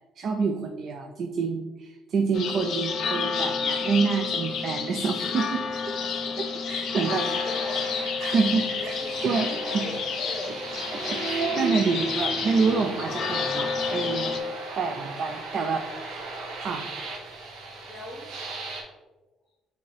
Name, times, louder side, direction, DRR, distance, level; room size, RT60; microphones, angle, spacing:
voice 1, 0.2-5.8 6.4-7.5 8.2-9.0 9.2-9.8 11.0-14.4 14.8-16.3 16.6-16.9, right 5 dB, 45° right, 4 dB, 0.3 m, -28 dB
sound 1, 2.3-14.4, left 5 dB, 55° left, 0.5 m, -30 dB
sound 2, 7.0-18.8, right 3 dB, 85° right, 0.9 m, -35 dB
voice 2, 7.2-7.9 8.8-9.1 9.5-10.9 12.1-12.2 15.1-15.4 17.9-18.2, left 1 dB, 20° left, 0 dB, 0.8 m, -40 dB
5.5 x 2.7 x 3.2 m, 1.2 s
cardioid pair, 145°, 0 cm